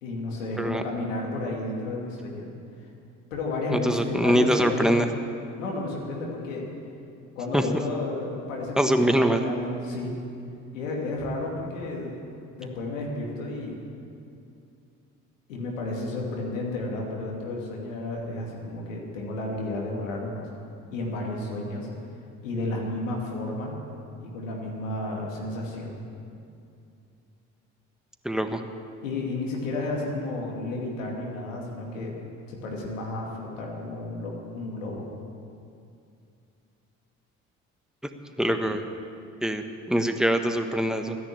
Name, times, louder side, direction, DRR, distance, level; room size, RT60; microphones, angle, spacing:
voice 1, 0.0-2.5 2.8-2.9 3.3-4.9 5.6-6.6 7.4-8.9 9.2-10.2 10.7-12.1 12.6-13.8 15.5-20.5 20.9-21.9 22.4-23.7 24.2-25.9 29.0-32.1 32.5-35.1, left 2 dB, 85° left, -2 dB, 2.6 m, -32 dB
voice 2, 3.7-5.1 7.5-7.7 8.8-9.5 28.2-28.6 38.4-38.8 39.4-41.2, equal, ahead, 6 dB, 1.4 m, -23 dB
14.0 x 10.5 x 8.8 m, 2.6 s
hypercardioid pair, 55°, 38 cm